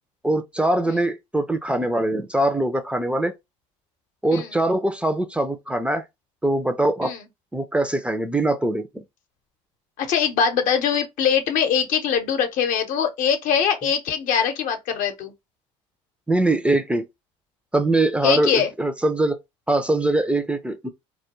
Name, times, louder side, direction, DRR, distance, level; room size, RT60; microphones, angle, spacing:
voice 1, 0.2-3.3 4.2-6.0 6.4-7.1 7.5-8.9 16.3-17.0 17.7-19.4 19.7-20.9, right 1 dB, 5° right, 0.4 m, -22 dB
voice 2, 10.0-15.3 18.2-18.7, left 7 dB, 60° left, 0.7 m, -22 dB
2.2 x 2.1 x 2.9 m
hypercardioid pair, 80°, 15 cm